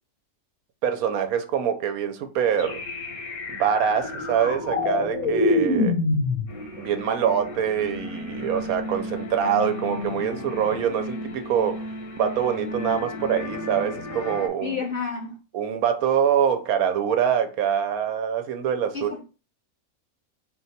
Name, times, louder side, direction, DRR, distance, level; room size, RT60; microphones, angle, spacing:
voice 1, 0.8-2.8 3.5-6.0 6.8-11.9 12.2-14.8 15.5-19.2, right 8 dB, 85° right, 1.1 m, -24 dB
sound 1, 2.6-14.5, left 2 dB, 80° left, 1.2 m, -29 dB
voice 2, 14.6-15.4 18.9-19.2, left 5 dB, 55° left, 0.6 m, -30 dB
4.0 x 2.3 x 4.1 m
omnidirectional pair, 1.5 m